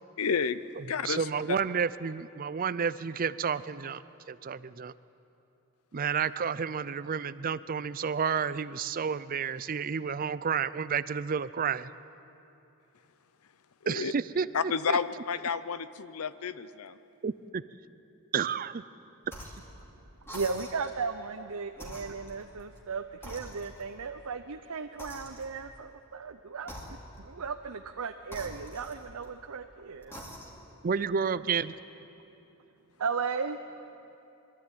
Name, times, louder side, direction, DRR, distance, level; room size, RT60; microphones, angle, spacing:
voice 1, 0.2-0.6 0.9-1.3 13.8-14.1 14.5-17.0, left 6 dB, 80° left, 15 dB, 0.6 m, -30 dB
voice 2, 0.8-4.0 4.3-4.9 5.9-11.9 13.9-14.5 14.9-15.0 17.2-17.6 18.3-18.8 30.8-31.7, right 6 dB, 40° right, 16 dB, 0.4 m, -31 dB
sound 1, 19.3-19.7 20.2-21.0 21.7-22.9 23.2-24.0 25.0-25.7 26.6-27.3 28.3-29.4 30.0-30.7, equal, 10° left, 2.5 m, -45 dB
voice 3, 20.3-26.7 27.2-30.1 32.1-32.2 33.0-33.6, right 5 dB, 85° right, 6 dB, 0.7 m, -35 dB
22.5 x 13.0 x 9.0 m, 2.9 s
head